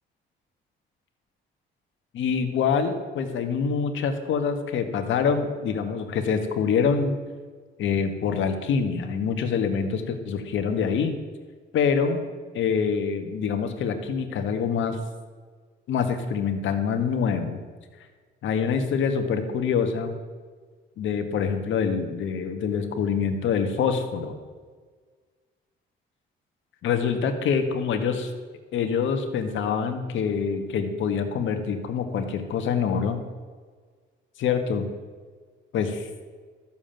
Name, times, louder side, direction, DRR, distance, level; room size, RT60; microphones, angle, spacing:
voice 1, 2.1-7.2 7.8-11.1 11.7-12.2 12.5-15.0 15.9-17.6 18.4-20.1 21.0-24.3 26.8-28.3 28.7-33.2 34.4-34.9 35.7-36.1, left 6 dB, 80° left, 6 dB, 1.8 m, -25 dB
13.0 x 7.4 x 9.1 m, 1.5 s
cardioid pair, 90°, 20 cm